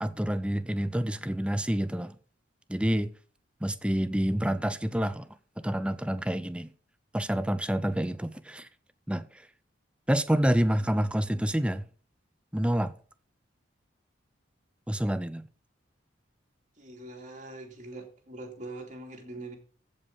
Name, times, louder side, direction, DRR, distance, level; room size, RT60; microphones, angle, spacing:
voice 1, 0.0-2.2 2.7-3.1 3.6-5.3 5.6-6.7 7.1-8.7 9.1-9.5 10.1-11.9 12.5-12.9 14.9-15.5, equal, 5° right, 0.5 m, -28 dB
voice 2, 16.8-19.6, right 2 dB, 40° right, 2.7 m, -43 dB
15.0 x 5.5 x 5.4 m
head